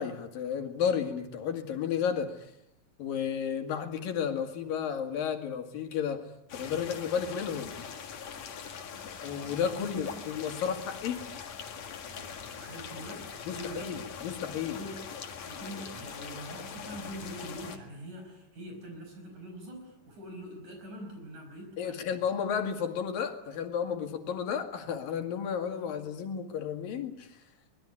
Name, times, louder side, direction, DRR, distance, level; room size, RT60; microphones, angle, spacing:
voice 1, 0.0-2.5 3.0-7.7 9.2-11.2 13.5-14.8 21.8-27.4, left 7 dB, 90° left, 6 dB, 3.9 m, -32 dB
sound 1, 6.5-17.8, left 7 dB, 55° left, 3.0 m, -42 dB
voice 2, 12.1-14.0 14.7-15.1 15.5-22.3, right 1 dB, 60° right, 3 dB, 6.6 m, -44 dB
24.5 x 21.0 x 9.9 m, 0.83 s
omnidirectional pair, 3.9 m